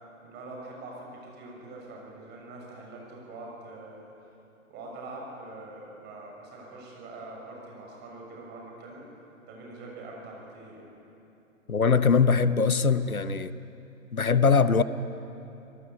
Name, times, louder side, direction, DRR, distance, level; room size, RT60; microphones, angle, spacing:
voice 1, 0.2-4.1 4.7-9.1 9.5-10.9, right 2 dB, 25° right, -1 dB, 6.8 m, -44 dB
voice 2, 11.7-13.5 14.1-14.8, left 5 dB, 90° left, 14 dB, 0.9 m, -22 dB
27.0 x 18.5 x 8.3 m, 2.9 s
figure-of-eight pair, 120°, 41 cm